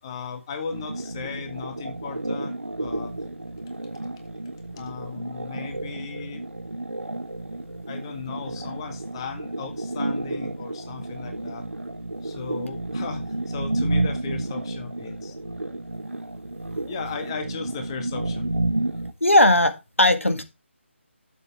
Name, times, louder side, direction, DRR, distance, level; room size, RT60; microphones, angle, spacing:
voice 1, 0.0-3.1 4.7-6.4 7.9-11.7 12.2-15.4 16.9-18.7, left 5 dB, 25° left, 1.7 m, -36 dB
sound 1, 0.7-19.1, right 2 dB, 80° right, 1.2 m, -31 dB
voice 2, 19.2-20.4, left 1 dB, 80° left, 1.8 m, -18 dB
12.0 x 7.5 x 3.3 m
figure-of-eight pair, 155°, 7 cm